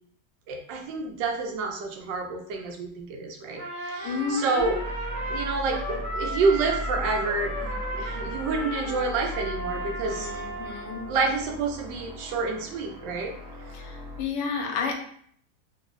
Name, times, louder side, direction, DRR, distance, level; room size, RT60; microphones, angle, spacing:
voice 1, 0.5-4.8 5.3-10.3 11.1-13.3, right 4 dB, 90° right, 2 dB, 1.3 m, -28 dB
Trumpet, 3.6-11.1, right 1 dB, 40° right, 0.6 m, -34 dB
voice 2, 4.0-4.8 10.0-11.1 13.7-14.9, left 5 dB, 85° left, 3 dB, 1.2 m, -31 dB
sound 1, 4.6-8.6, right 1 dB, 15° left, 0.5 m, -36 dB
sound 2, 6.7-14.3, left 3 dB, 70° right, 1.2 m, -42 dB
3.3 x 2.0 x 3.6 m, 0.62 s
omnidirectional pair, 1.9 m